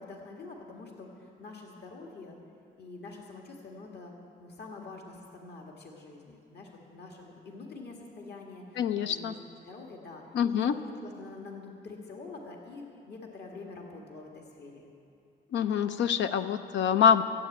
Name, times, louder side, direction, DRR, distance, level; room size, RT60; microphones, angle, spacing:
voice 1, 0.0-2.4 2.8-4.1 4.4-9.4 9.6-10.2 10.5-14.8, left 3 dB, 65° left, 0 dB, 2.0 m, -46 dB
voice 2, 8.8-9.3 10.3-10.7 15.5-17.2, left 7 dB, 90° left, 10 dB, 0.7 m, -25 dB
13.5 x 8.2 x 8.7 m, 2.7 s
cardioid pair, 70°, 18 cm